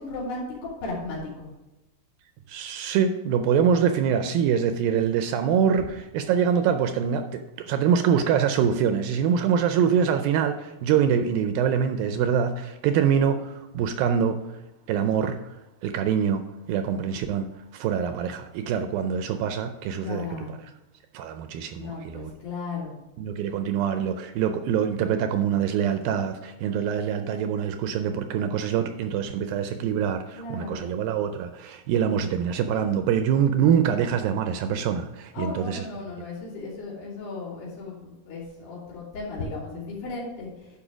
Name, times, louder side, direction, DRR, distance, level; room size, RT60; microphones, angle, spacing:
voice 1, 0.0-1.5 20.0-20.5 21.8-22.9 30.4-31.0 32.7-32.9 35.3-40.7, left 3 dB, 90° left, -7 dB, 4.9 m, -35 dB
voice 2, 2.5-14.4 14.9-15.4 15.8-20.3 21.1-22.3 23.2-35.9, right 8 dB, 80° right, 8 dB, 2.1 m, -24 dB
11.0 x 5.2 x 5.0 m, 1.0 s
omnidirectional pair, 4.6 m